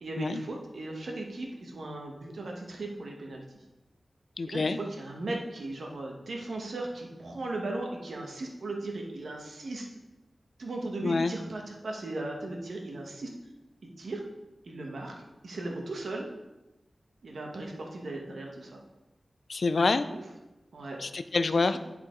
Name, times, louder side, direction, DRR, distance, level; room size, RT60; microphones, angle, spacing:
voice 1, 0.0-3.4 4.5-9.8 10.6-13.3 14.0-14.2 14.7-15.1 15.4-16.3 17.2-18.8 20.1-20.2 20.7-21.0 21.6-21.8, right 2 dB, 90° right, 0 dB, 1.3 m, -37 dB
voice 2, 4.4-4.8 11.0-11.3 19.5-20.1 21.0-21.8, left 3 dB, 70° left, 11 dB, 0.4 m, -26 dB
10.5 x 4.5 x 3.9 m, 1.0 s
wide cardioid pair, 85°, 0 cm